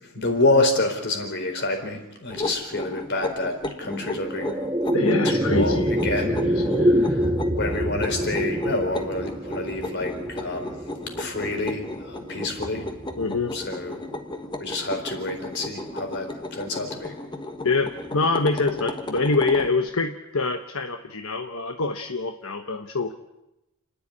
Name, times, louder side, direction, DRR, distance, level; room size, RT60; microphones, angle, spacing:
voice 1, 0.0-4.5 5.2-6.6 6.9-7.1 7.5-10.8 11.2-12.8 13.5-14.0 14.6-17.1, left 2 dB, 55° left, 4 dB, 4.3 m, -27 dB
sound 1, 2.3-19.7, left 1 dB, 20° left, 1.5 m, -35 dB
sound 2, 3.8-14.3, equal, 15° right, 0.7 m, -27 dB
voice 2, 4.9-7.0 13.2-13.6 17.6-23.1, left 3 dB, 70° left, 6 dB, 1.1 m, -25 dB
29.5 x 10.5 x 9.9 m, 0.94 s
head